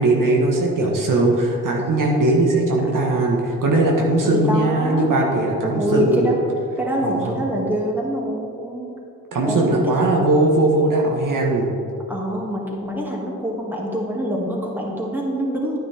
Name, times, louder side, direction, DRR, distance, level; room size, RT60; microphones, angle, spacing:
voice 1, 0.0-6.3 7.0-7.3 9.3-11.7, right 2 dB, 65° right, -2 dB, 1.6 m, -19 dB
voice 2, 4.2-5.1 5.6-6.4 6.8-9.0 9.4-10.3 12.1-15.8, equal, 5° right, -3 dB, 2.3 m, -25 dB
9.7 x 9.6 x 3.6 m, 2.7 s
cardioid pair, 60°, 35 cm